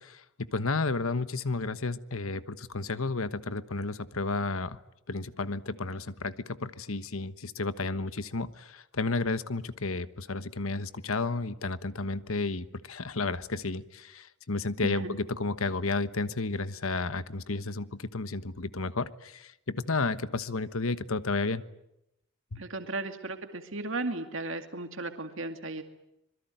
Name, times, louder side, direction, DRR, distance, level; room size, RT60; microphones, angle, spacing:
voice 1, 0.0-4.8 5.1-21.6 22.5-22.6, left 3 dB, 75° left, 13 dB, 1.3 m, -32 dB
voice 2, 14.8-15.2 22.6-25.8, right 2 dB, 60° right, 6 dB, 2.3 m, -35 dB
26.0 x 22.0 x 9.2 m, 0.83 s
head